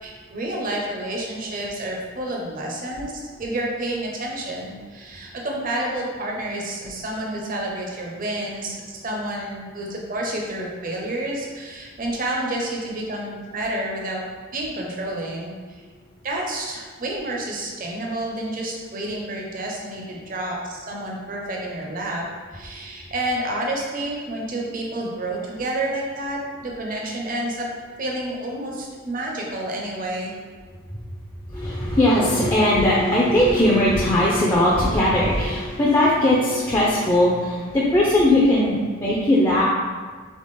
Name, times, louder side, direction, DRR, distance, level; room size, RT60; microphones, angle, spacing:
voice 1, 0.0-3.1 3.4-14.2 14.5-15.8 16.2-22.3 22.5-27.7 28.0-30.3, right 1 dB, 40° right, -1 dB, 0.7 m, -29 dB
voice 2, 31.5-39.6, left 1 dB, 15° left, -6 dB, 0.5 m, -19 dB
3.6 x 3.4 x 4.1 m, 1.5 s
head